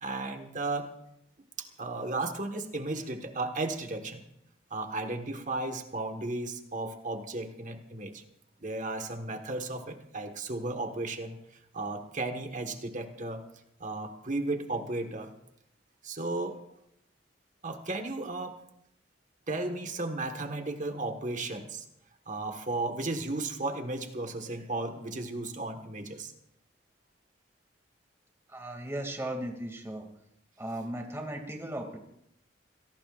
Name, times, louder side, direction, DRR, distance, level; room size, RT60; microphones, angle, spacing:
voice 1, 0.0-0.9 1.6-4.2 4.7-8.2 8.6-13.5 13.8-15.3 16.0-16.6 17.6-18.6 19.5-21.9 22.3-26.3, right 2 dB, 45° right, 6 dB, 1.5 m, -34 dB
voice 2, 28.5-30.1 30.6-32.0, right 1 dB, 15° right, 2 dB, 2.5 m, -36 dB
27.0 x 18.0 x 2.5 m, 0.78 s
head